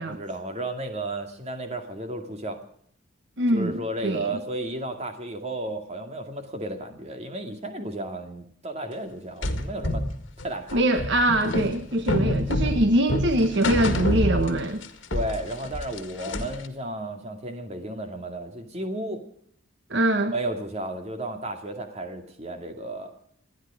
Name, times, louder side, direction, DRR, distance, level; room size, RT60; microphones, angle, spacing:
voice 1, 0.0-2.6 3.5-10.0 10.4-10.9 15.1-19.2 20.3-23.1, right 1 dB, 35° right, 5 dB, 2.3 m, -33 dB
voice 2, 3.4-4.4 10.7-14.8 19.9-20.3, right 1 dB, 65° right, 8 dB, 1.3 m, -23 dB
sound 1, 9.4-14.9 15.1-16.7, left 1 dB, 75° left, 2.0 m, -27 dB
28.0 x 10.5 x 4.9 m, 0.65 s
head